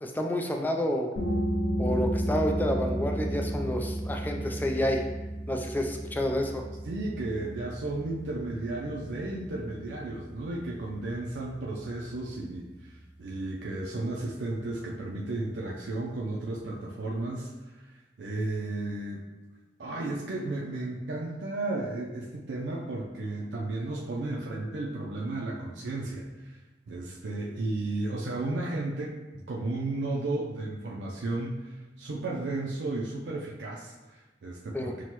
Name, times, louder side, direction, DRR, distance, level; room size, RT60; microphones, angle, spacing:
voice 1, 0.0-1.1 1.8-5.0 5.5-6.6 34.7-34.9, left 1 dB, 10° left, 2 dB, 0.3 m, -29 dB
sound 1, 1.2-12.5, right 1 dB, 90° left, 0.8 m, -33 dB
voice 2, 6.8-19.2 19.8-26.5 26.9-35.0, right 2 dB, 85° right, -3 dB, 0.4 m, -34 dB
6.1 x 2.1 x 2.9 m, 1.1 s
head